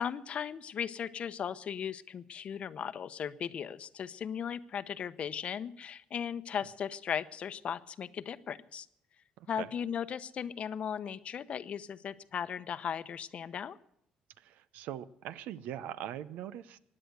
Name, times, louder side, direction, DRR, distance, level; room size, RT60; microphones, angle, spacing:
voice 1, 0.0-8.9 9.5-13.8, left 8 dB, 50° left, 15 dB, 0.8 m, -37 dB
voice 2, 9.4-9.7 14.4-16.8, right 11 dB, 85° right, 16 dB, 0.7 m, -41 dB
16.0 x 10.0 x 7.9 m, 0.74 s
cardioid pair, 95°, 3 cm